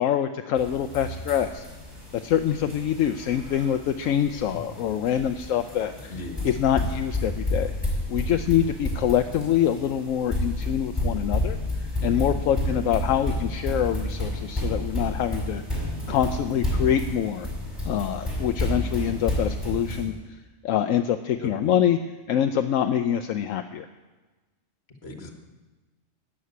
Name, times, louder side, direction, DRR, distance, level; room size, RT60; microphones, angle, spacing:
voice 1, 0.0-1.6 2.2-6.1 6.4-7.7 8.1-15.8 16.1-17.5 17.8-20.1 20.6-22.0 22.3-23.9, left 10 dB, 80° left, 7 dB, 1.0 m, -25 dB
sound 1, 0.6-20.1, left 1 dB, ahead, 5.6 m, -30 dB
voice 2, 6.1-6.4 21.4-21.5 25.0-25.3, left 3 dB, 50° left, 3 dB, 1.9 m, -37 dB
12.5 x 7.6 x 9.4 m, 1.2 s
omnidirectional pair, 1.4 m